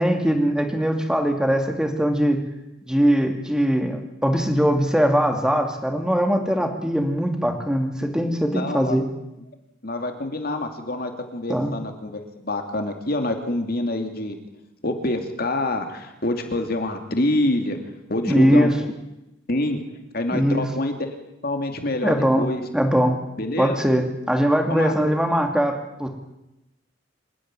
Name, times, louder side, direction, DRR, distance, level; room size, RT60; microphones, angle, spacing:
voice 1, 0.0-2.4 2.8-9.0 11.5-11.7 18.3-18.7 20.3-20.6 22.0-22.5 22.7-23.2 23.6-26.1, equal, 5° right, 4 dB, 2.5 m, -21 dB
voice 2, 8.5-9.0 9.8-14.5 14.8-17.8 18.1-18.7 19.5-19.8 20.1-21.2 21.4-22.6 23.4-23.8 24.7-24.9, left 1 dB, 50° left, 5 dB, 2.6 m, -26 dB
27.0 x 10.0 x 9.8 m, 0.93 s
head